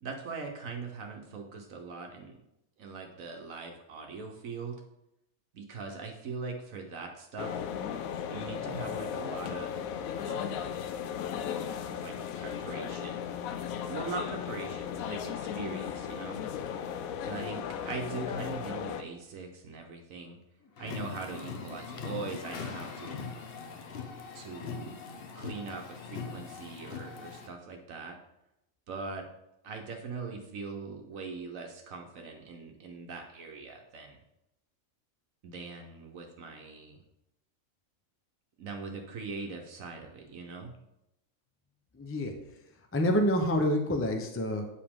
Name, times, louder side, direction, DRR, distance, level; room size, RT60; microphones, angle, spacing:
voice 1, 0.0-2.4 2.8-4.8 5.5-7.6 8.3-9.7 10.2-10.6 11.9-13.3 13.9-16.4 17.2-20.4 20.8-23.2 24.3-25.0 25.3-28.2 28.9-29.3 29.6-34.2 35.4-37.0 38.6-40.7, right 4 dB, 70° right, 3 dB, 1.2 m, -41 dB
sound 1, 7.4-19.0, left 8 dB, 75° left, 1.0 m, -36 dB
sound 2, 20.8-27.5, left 5 dB, 50° left, 0.8 m, -41 dB
voice 2, 41.9-42.3 42.9-44.7, equal, 20° left, 4 dB, 0.4 m, -27 dB
8.9 x 4.9 x 3.6 m, 0.86 s
omnidirectional pair, 1.5 m